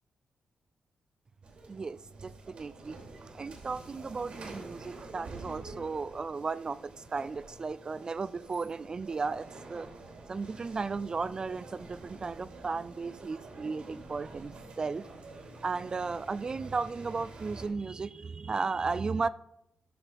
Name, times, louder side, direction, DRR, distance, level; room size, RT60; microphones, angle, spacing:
sound 1, 1.4-17.7, right 2 dB, 65° right, 2.8 m, -48 dB
voice 1, 1.7-2.9 3.2-9.9 10.3-15.1 15.6-19.3, right 4 dB, 40° right, 0.3 m, -35 dB
13.5 x 5.8 x 4.6 m
cardioid pair, 85°, 2 cm